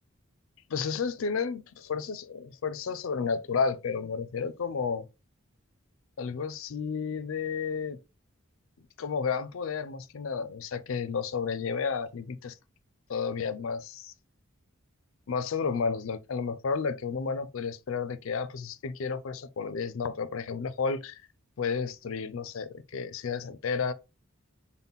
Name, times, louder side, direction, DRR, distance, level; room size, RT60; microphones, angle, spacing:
voice 1, 0.7-5.1 6.2-8.0 9.0-12.6 13.1-14.1 15.3-21.2 21.6-23.9, left 5 dB, 75° left, 0.4 m, -32 dB
5.6 x 2.1 x 3.5 m
head